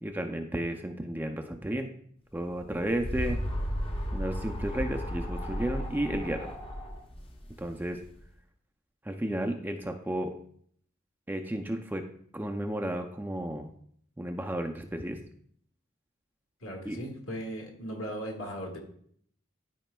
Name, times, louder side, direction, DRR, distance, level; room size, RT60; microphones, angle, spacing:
voice 1, 0.0-1.9 2.3-3.4 4.1-6.5 7.6-8.0 9.0-10.3 11.3-12.0 12.3-13.7 14.2-15.2 16.9-17.0, right 1 dB, 10° right, 6 dB, 0.4 m, -33 dB
sound 1, 2.5-8.1, equal, 25° left, 0.7 m, -34 dB
voice 2, 16.6-18.8, equal, 75° left, 1 dB, 1.7 m, -37 dB
12.0 x 5.1 x 2.2 m, 0.63 s
head